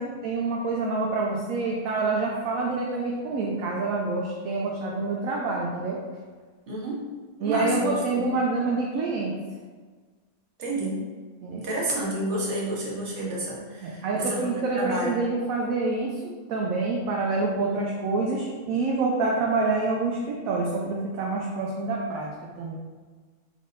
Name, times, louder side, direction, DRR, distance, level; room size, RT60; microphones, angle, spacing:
voice 1, 0.2-6.0 7.4-9.3 11.4-11.6 13.8-16.2 16.5-22.3 22.6-22.8, right 3 dB, 70° right, -2 dB, 0.9 m, -27 dB
voice 2, 6.7-7.0 7.4-8.3 10.6-11.0 11.6-15.2, right 1 dB, 50° right, -4 dB, 1.2 m, -30 dB
3.4 x 3.2 x 3.8 m, 1.4 s
omnidirectional pair, 1.6 m